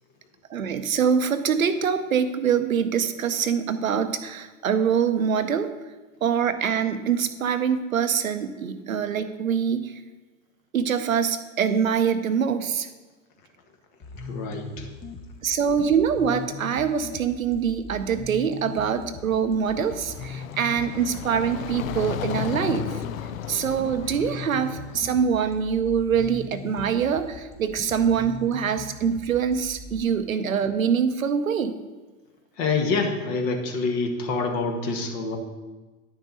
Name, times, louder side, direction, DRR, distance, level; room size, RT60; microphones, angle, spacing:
voice 1, 0.5-5.7 6.2-9.9 10.7-12.9 15.4-22.9 23.5-31.7, right 7 dB, 90° right, 10 dB, 0.7 m, -24 dB
sound 1, 14.0-30.0, left 4 dB, 30° left, 1.3 m, -40 dB
voice 2, 14.2-14.9 32.6-35.4, left 4 dB, 55° left, 3 dB, 1.7 m, -26 dB
sound 2, 19.4-25.4, left 10 dB, 85° left, 0.5 m, -35 dB
9.9 x 6.4 x 4.1 m, 1.2 s
hypercardioid pair, 85°, 40 cm